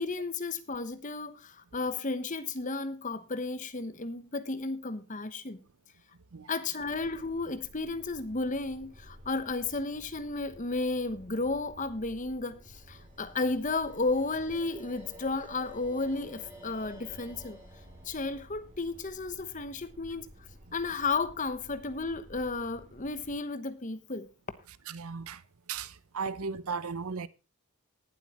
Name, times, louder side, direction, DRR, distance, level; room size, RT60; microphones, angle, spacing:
voice 1, 0.0-5.6 6.5-17.6 18.0-20.3 20.7-24.3, left 3 dB, 35° left, 1.0 m, -33 dB
sound 1, 6.8-23.4, equal, 35° right, 3.2 m, -54 dB
sound 2, 12.7-19.9, equal, 10° right, 3.6 m, -53 dB
voice 2, 24.9-25.4 25.7-27.3, right 5 dB, 75° right, 0.8 m, -36 dB
19.5 x 7.8 x 3.0 m
head